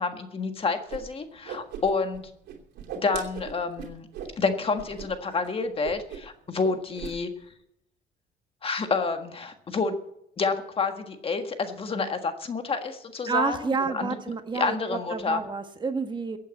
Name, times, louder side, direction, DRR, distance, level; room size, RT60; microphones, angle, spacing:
voice 1, 0.0-2.2 3.0-4.1 4.4-7.3 8.6-10.0 10.4-14.2 14.5-15.4, left 4 dB, 35° left, 7 dB, 1.6 m, -29 dB
Whoosh swoosh swish, 0.9-1.0 1.3-2.2 2.5-4.3 4.7-5.1 5.3-5.5 5.8-6.3 6.6-7.1, right 8 dB, 80° right, 2.8 m, -38 dB
voice 2, 13.3-16.4, right 5 dB, 25° right, 7 dB, 1.4 m, -29 dB
15.5 x 8.5 x 8.2 m, 0.77 s
cardioid pair, 110°, 17 cm